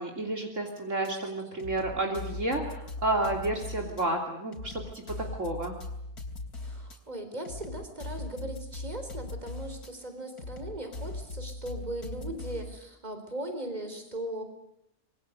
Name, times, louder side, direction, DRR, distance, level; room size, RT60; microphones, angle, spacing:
voice 1, 0.0-5.8, right 2 dB, 55° right, 2 dB, 3.5 m, -31 dB
sound 1, 1.0-1.1 1.6-4.0 4.5-7.0 7.4-9.9 10.4-12.8, left 2 dB, 90° left, 4.0 m, -40 dB
voice 2, 6.6-14.4, right 1 dB, 25° right, 7 dB, 4.2 m, -38 dB
26.0 x 23.0 x 8.0 m, 0.78 s
omnidirectional pair, 1.6 m